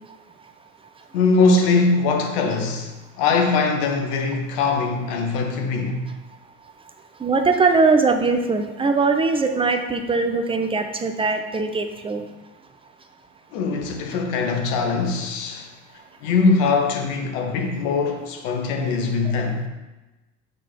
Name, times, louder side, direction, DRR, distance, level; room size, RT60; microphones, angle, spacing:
voice 1, 1.1-2.9 3.2-6.0 13.5-15.7 16.2-19.6, left 4 dB, 60° left, 1.3 m, -21 dB
voice 2, 7.2-12.2, right 4 dB, 10° right, 0.6 m, -21 dB
6.3 x 3.9 x 4.7 m
hypercardioid pair, 70°, 45 cm